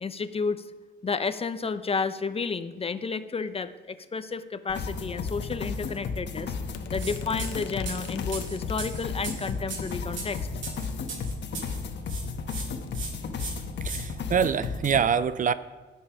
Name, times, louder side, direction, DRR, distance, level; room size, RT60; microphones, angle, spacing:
voice 1, 0.0-0.6 1.0-6.5 6.9-10.4, left 4 dB, 30° left, 12 dB, 0.6 m, -31 dB
sound 1, 4.7-15.0, left 4 dB, 60° left, 1.3 m, -34 dB
sound 2, 5.3-5.4 6.7-8.8 9.7-9.8 10.0-11.7 12.6-13.2, left 9 dB, 90° left, 0.8 m, -46 dB
sound 3, 7.0-7.1 7.4-11.8 12.1-12.7 12.9-13.1 13.4-14.0, right 5 dB, 70° right, 2.9 m, -37 dB
voice 2, 13.8-15.5, right 7 dB, 40° right, 15 dB, 0.4 m, -25 dB
15.0 x 5.5 x 5.7 m, 1.3 s
cardioid pair, 90°, 20 cm